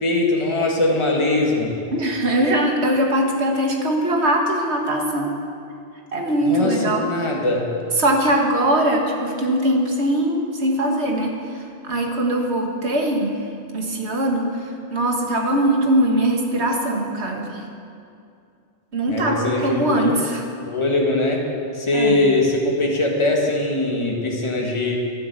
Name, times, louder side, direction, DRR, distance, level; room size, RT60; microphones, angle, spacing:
voice 1, 0.0-1.7 6.4-7.7 19.1-20.2 20.7-21.4 21.7-25.0, left 2 dB, 25° left, -1 dB, 1.8 m, -21 dB
voice 2, 1.9-5.3 6.1-7.0 8.0-13.4 13.7-14.5 14.9-17.6 18.9-20.4 21.9-22.2, right 1 dB, 70° right, 2 dB, 1.9 m, -21 dB
11.5 x 11.0 x 8.1 m, 2.4 s
omnidirectional pair, 1.2 m